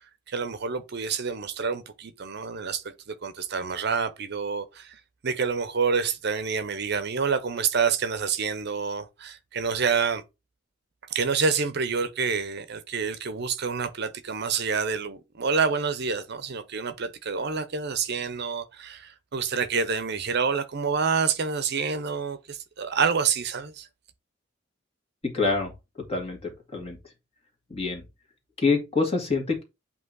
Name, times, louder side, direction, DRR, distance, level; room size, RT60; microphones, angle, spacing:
voice 1, 0.3-10.2 11.1-23.9, right 5 dB, 60° right, 0.7 m, -28 dB
voice 2, 25.2-25.7 26.1-27.0 27.7-28.0 28.6-29.6, left 4 dB, 30° left, 2.1 m, -26 dB
8.0 x 3.0 x 3.9 m
head